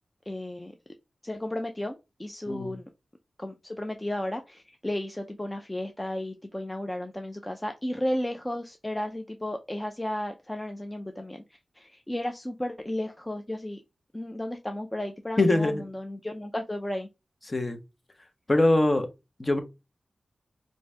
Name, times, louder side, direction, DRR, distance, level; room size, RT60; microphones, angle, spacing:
voice 1, 0.3-0.7 1.2-2.8 3.4-11.4 11.7-13.8 14.1-17.1, left 1 dB, 15° left, 0.5 m, -33 dB
voice 2, 15.4-15.8 17.5-17.8 18.5-19.1 19.4-19.6, left 2 dB, 30° left, 0.8 m, -23 dB
4.7 x 2.6 x 3.3 m
wide cardioid pair, 80°, 0 cm